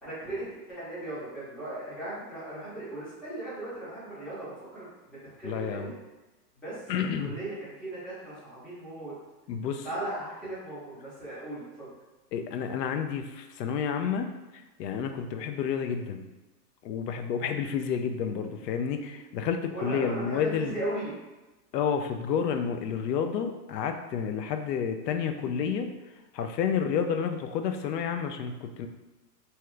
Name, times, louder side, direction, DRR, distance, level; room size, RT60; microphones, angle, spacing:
voice 1, 0.0-5.9 6.6-6.8 7.2-9.1 9.8-11.9 19.7-21.1, right 1 dB, ahead, -13 dB, 0.8 m, -37 dB
voice 2, 5.4-5.9 6.9-7.4 9.5-9.9 12.3-14.3 14.8-16.3 16.8-20.7 21.7-25.9 26.3-28.9, left 7 dB, 75° left, 7 dB, 0.6 m, -30 dB
2.8 x 2.3 x 3.2 m, 1.1 s
supercardioid pair, 155°, 49 cm